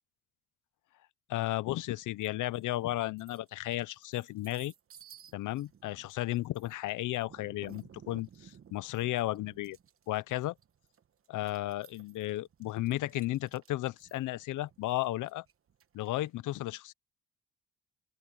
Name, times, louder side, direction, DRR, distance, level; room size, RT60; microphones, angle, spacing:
voice 1, 1.3-4.7 5.3-9.8 10.1-10.5 11.3-15.4 15.9-16.9, left 16 dB, 85° left, 0.8 m, -34 dB
sound 1, 2.2-2.6 3.0-16.3, right 8 dB, 45° right, 1.2 m, -57 dB
open air
cardioid pair, 90°, 30 cm